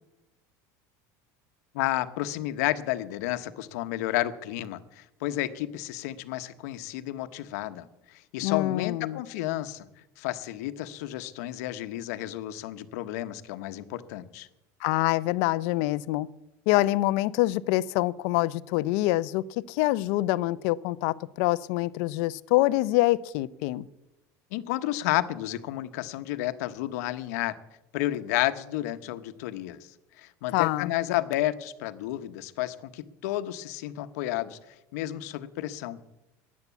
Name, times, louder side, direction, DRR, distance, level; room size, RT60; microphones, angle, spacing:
voice 1, 1.7-9.8 10.2-14.5 24.5-27.5 27.9-29.9 30.2-34.6 34.9-36.0, left 15 dB, 80° left, 11 dB, 1.0 m, -31 dB
voice 2, 8.4-9.2 14.8-16.3 16.7-23.9 30.5-30.9, left 17 dB, 60° left, 18 dB, 0.6 m, -25 dB
14.5 x 9.6 x 8.3 m, 0.96 s
cardioid pair, 170°, 9 cm